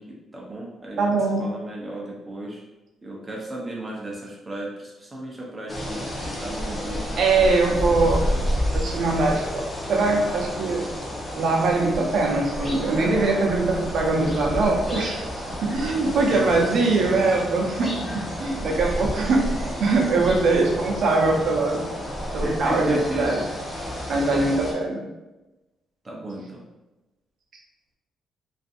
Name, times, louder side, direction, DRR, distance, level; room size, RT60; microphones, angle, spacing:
voice 1, 0.0-1.1 1.4-2.6 3.0-8.6 16.3-16.6 22.3-23.3 26.0-26.6, right 1 dB, 25° right, -3 dB, 0.6 m, -35 dB
voice 2, 1.0-1.4 7.2-8.2 8.7-9.6 9.9-10.8 11.3-21.8 22.3-23.4 24.1-25.1, right 3 dB, 65° right, -1 dB, 0.6 m, -22 dB
sound 1, 5.7-24.7, equal, 20° left, 0.7 m, -30 dB
2.6 x 2.5 x 2.4 m, 1.1 s
cardioid pair, 90°, 0 cm